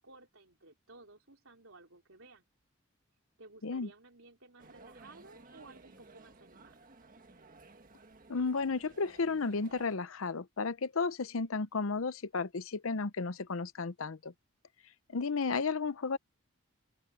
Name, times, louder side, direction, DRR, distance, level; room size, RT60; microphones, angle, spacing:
voice 1, 0.0-2.4 3.4-6.9 11.0-11.4, right 2 dB, 75° right, 3.9 m, -56 dB
sound 1, 4.6-10.0, right 3 dB, 40° right, 1.6 m, -57 dB
voice 2, 8.3-14.3 15.1-16.2, left 4 dB, 75° left, 0.7 m, -33 dB
open air
head